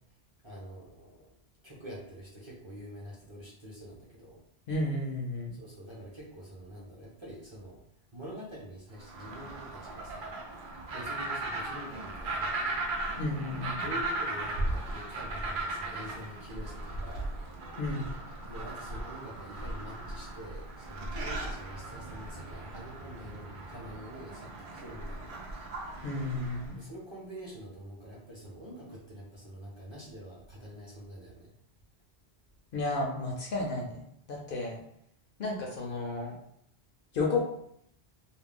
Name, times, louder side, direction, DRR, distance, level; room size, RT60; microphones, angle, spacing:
voice 1, 0.4-1.3 1.6-4.4 5.5-7.8 8.1-10.3 10.9-12.7 13.8-17.3 18.4-25.5 26.7-31.5, equal, 30° right, -6 dB, 0.8 m, -46 dB
voice 2, 4.7-5.5 13.2-13.7 17.8-18.0 26.0-26.8 32.7-34.0 34.3-34.8 35.4-36.3 37.1-37.4, left 2 dB, 60° left, -1 dB, 0.7 m, -32 dB
sound 1, 9.0-26.7, right 2 dB, 60° right, 0.6 m, -37 dB
2.4 x 2.1 x 3.4 m, 0.72 s
omnidirectional pair, 1.1 m